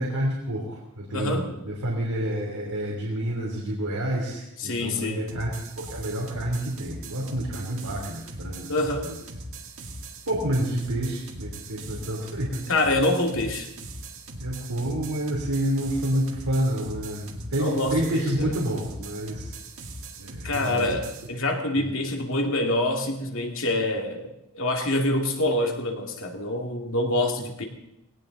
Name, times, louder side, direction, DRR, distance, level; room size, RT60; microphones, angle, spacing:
voice 1, 0.0-8.7 9.0-9.1 10.3-12.6 14.4-19.5 20.2-20.8 21.8-22.0, right 1 dB, 90° right, -3 dB, 3.1 m, -29 dB
voice 2, 1.1-1.6 4.6-5.3 8.7-9.1 12.7-13.7 17.6-18.5 20.4-24.3 24.5-27.6, left 1 dB, 60° left, 3 dB, 2.3 m, -26 dB
sound 1, 5.3-21.3, right 2 dB, 60° right, 2.0 m, -40 dB
19.0 x 18.0 x 3.9 m, 0.86 s
head